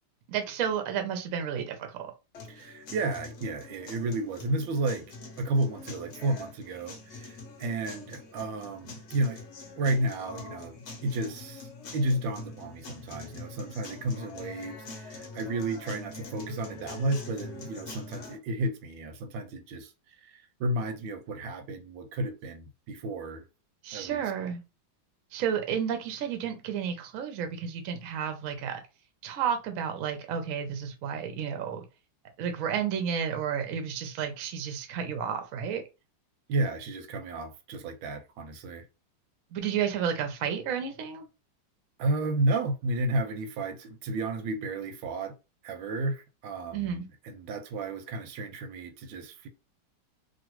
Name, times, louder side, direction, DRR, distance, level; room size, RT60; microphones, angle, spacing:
voice 1, 0.3-2.1 23.8-24.6 25.3-28.8 29.2-31.8 32.4-35.8 39.5-41.3 46.7-47.1, right 8 dB, 65° right, 0.8 m, -31 dB
sound 1, 2.3-18.4, left 3 dB, 55° left, 0.7 m, -44 dB
voice 2, 2.5-5.0 5.4-9.4 9.8-23.4 23.9-24.2 36.5-38.8 42.0-45.3 45.6-49.5, right 2 dB, 85° right, 1.4 m, -32 dB
3.0 x 2.4 x 3.0 m
omnidirectional pair, 2.0 m